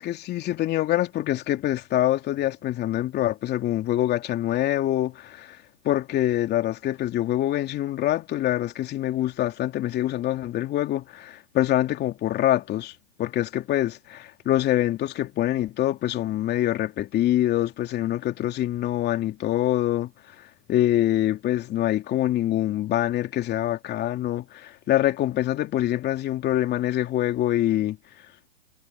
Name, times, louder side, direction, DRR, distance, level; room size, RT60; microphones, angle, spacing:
voice 1, 0.0-5.6 5.8-20.1 20.4-28.0, left 13 dB, 25° left, 2.8 m, -25 dB
hypercardioid pair, 135°, 38 cm